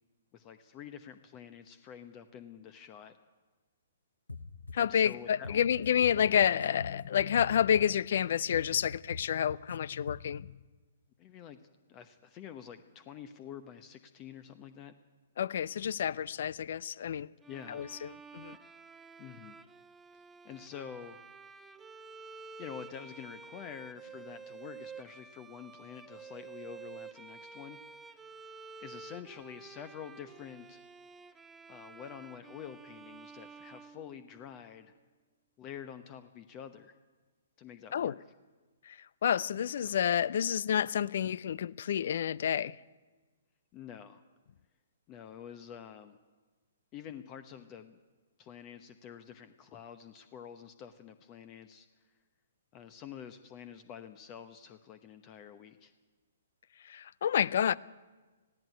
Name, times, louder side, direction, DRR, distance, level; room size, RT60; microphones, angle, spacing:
voice 1, 0.3-3.2 4.7-5.6 11.2-11.6 11.9-14.9 17.5-17.8 19.2-19.6 20.1-21.2 22.6-27.8 28.8-30.8 31.7-34.9 35.6-36.9 37.6-38.2 39.8-40.0 43.7-44.2 45.1-46.2 46.9-48.0 48.4-51.9 52.7-55.9, left 8 dB, 25° left, 1.0 m, -47 dB
sound 1, 4.3-5.1 5.4-8.2 8.5-9.8 10.1-10.5, left 3 dB, 80° left, 0.9 m, -45 dB
voice 2, 4.7-10.5 15.4-17.3 17.7-17.9 18.3-18.6 37.9-38.1 38.9-39.0 39.2-42.7 56.9-57.7, left 9 dB, 50° left, 0.5 m, -29 dB
Bowed string instrument, 17.4-34.6, right 5 dB, 10° right, 0.8 m, -50 dB
19.5 x 15.5 x 9.4 m
figure-of-eight pair, 120°, 0 cm